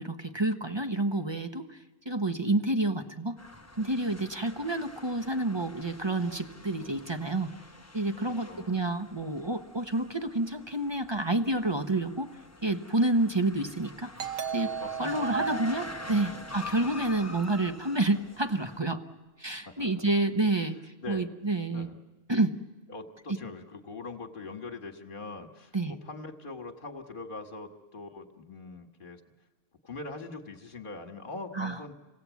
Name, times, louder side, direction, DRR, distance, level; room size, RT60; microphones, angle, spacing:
voice 1, 0.0-1.8 2.1-3.4 3.8-7.5 7.9-12.3 12.6-14.1 14.5-14.7 15.0-19.0 19.4-21.9 22.3-22.6 25.7-25.9 31.5-31.8, right 2 dB, 25° right, 7 dB, 0.7 m, -29 dB
sound 1, 3.4-18.8, right 1 dB, 15° left, 0.6 m, -44 dB
voice 2, 8.5-8.8 14.8-16.3 19.6-20.2 21.0-21.2 21.7-21.9 22.9-29.2 29.8-31.9, left 3 dB, 40° left, 5 dB, 1.8 m, -42 dB
Doorbell, 14.2-17.5, right 8 dB, 85° right, 1.6 m, -38 dB
27.5 x 17.5 x 8.3 m, 1.2 s
omnidirectional pair, 1.4 m